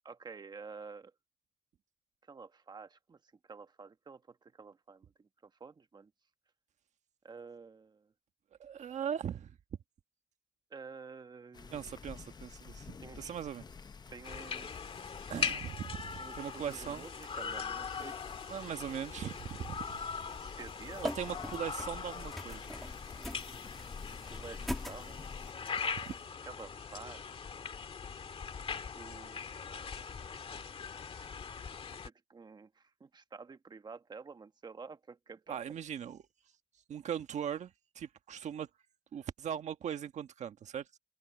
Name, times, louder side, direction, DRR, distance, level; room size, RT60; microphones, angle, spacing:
voice 1, 0.0-1.1 2.3-3.2 3.5-5.1 5.4-6.1 7.2-8.1 10.7-11.9 13.0-13.3 14.1-14.7 16.2-18.2 20.4-21.2 24.3-25.4 26.5-27.4 29.0-30.1 32.0-35.6, right 5 dB, 35° right, 1.3 m, -50 dB
voice 2, 8.6-9.6 11.7-13.6 15.3-17.1 18.5-19.9 21.0-22.6 26.0-26.2 35.5-36.2 36.9-38.7 39.1-41.0, right 9 dB, 80° right, 1.5 m, -39 dB
sound 1, 11.5-25.5, left 5 dB, 35° left, 0.7 m, -50 dB
sound 2, 14.2-32.1, left 6 dB, 55° left, 1.9 m, -41 dB
sound 3, 20.8-26.3, equal, ahead, 2.5 m, -43 dB
cardioid pair, 105°, 12 cm